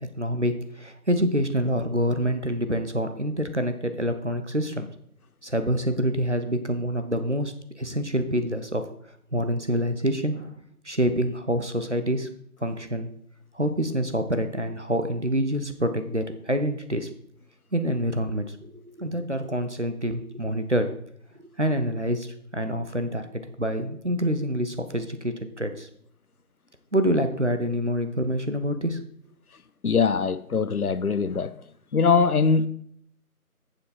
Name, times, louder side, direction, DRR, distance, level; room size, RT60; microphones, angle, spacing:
voice 1, 0.2-4.9 5.4-8.8 9.3-10.6 10.8-12.3 12.6-13.1 13.5-17.1 17.7-18.6 18.8-20.9 21.3-25.9 26.9-29.0, equal, 50° right, 0.9 m, -26 dB
voice 2, 29.8-31.5 31.9-32.7, left 5 dB, 70° left, 0.7 m, -22 dB
8.8 x 7.2 x 4.2 m
figure-of-eight pair, 175°, 45 cm